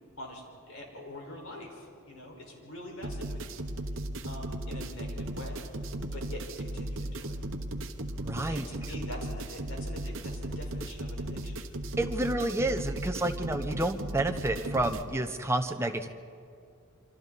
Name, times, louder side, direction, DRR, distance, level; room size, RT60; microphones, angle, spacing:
voice 1, 0.2-4.0 4.2-5.7 6.1-7.4 8.5-11.6, left 1 dB, 75° left, 0 dB, 5.1 m, -45 dB
sound 1, 3.0-15.0, right 1 dB, 60° right, 1.1 m, -36 dB
voice 2, 8.2-8.7 12.0-16.1, right 1 dB, 10° right, 5 dB, 0.9 m, -30 dB
27.5 x 25.5 x 4.2 m, 2.4 s
head